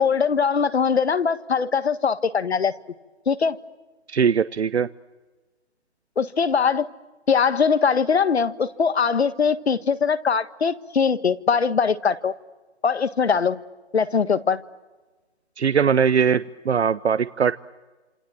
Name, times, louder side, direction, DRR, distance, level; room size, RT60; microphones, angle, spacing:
voice 1, 0.0-2.7 3.3-3.6 6.2-6.9 7.3-12.3 12.8-13.6 13.9-14.6, left 6 dB, 65° left, 1.6 m, -21 dB
voice 2, 4.1-4.9 15.6-17.5, right 7 dB, 70° right, 0.9 m, -20 dB
29.0 x 27.0 x 7.6 m
hypercardioid pair, 175°, 34 cm